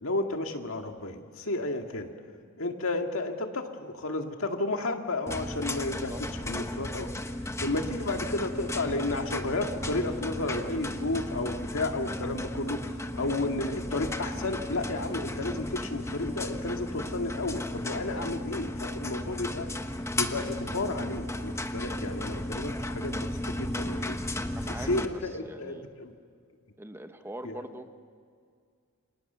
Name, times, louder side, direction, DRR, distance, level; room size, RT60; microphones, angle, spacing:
voice 1, 0.0-2.1 2.6-7.1 7.6-19.7 20.1-24.2 24.7-26.1 27.4-27.6, left 2 dB, 65° left, 4 dB, 2.1 m, -32 dB
sound 1, 5.3-25.1, left 1 dB, 15° left, 1.2 m, -35 dB
voice 2, 24.5-24.9 25.4-25.9 26.8-27.9, right 1 dB, 10° right, 8 dB, 1.1 m, -42 dB
29.0 x 25.5 x 6.9 m, 2.2 s
head